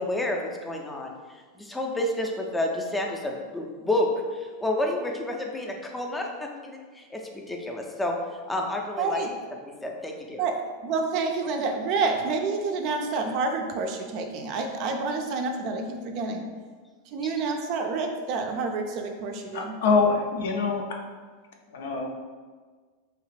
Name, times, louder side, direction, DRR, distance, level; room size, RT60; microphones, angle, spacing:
voice 1, 0.0-8.2 8.5-9.4 9.6-10.4 17.2-17.3, left 1 dB, 10° left, 1 dB, 0.4 m, -30 dB
voice 2, 9.0-9.3 10.4-10.6 10.8-16.4 17.1-19.7, right 4 dB, 50° right, 4 dB, 0.4 m, -28 dB
voice 3, 19.5-21.0 21.7-22.1, left 4 dB, 75° left, 2 dB, 0.5 m, -24 dB
2.9 x 2.4 x 3.2 m, 1.5 s
supercardioid pair, 125°, 0 cm